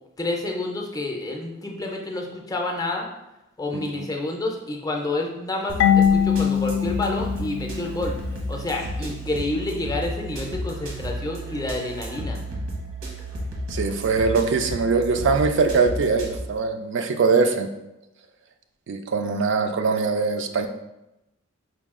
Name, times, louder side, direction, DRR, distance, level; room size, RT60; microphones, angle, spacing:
voice 1, 0.2-3.1 3.6-8.2 8.5-12.4, left 2 dB, 20° left, 1 dB, 0.5 m, -29 dB
voice 2, 3.7-4.1 13.7-17.7 18.9-20.7, right 4 dB, 60° right, 6 dB, 0.4 m, -22 dB
sound 1, 5.7-16.4, right 1 dB, 90° right, 1.1 m, -33 dB
Marimba xylophone / Wood, 5.8-8.5, left 8 dB, 70° left, 0.4 m, -22 dB
4.9 x 2.3 x 3.6 m, 0.92 s
head